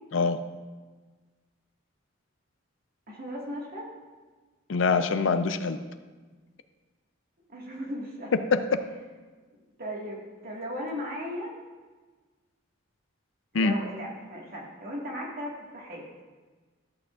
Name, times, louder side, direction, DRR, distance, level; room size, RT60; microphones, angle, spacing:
voice 1, 3.1-3.9 7.5-8.3 9.8-11.6 13.5-16.0, equal, 50° right, -2 dB, 1.7 m, -37 dB
voice 2, 4.7-5.8 8.5-8.8 13.5-13.8, left 4 dB, 70° left, 10 dB, 0.5 m, -24 dB
13.5 x 8.7 x 2.4 m, 1.4 s
head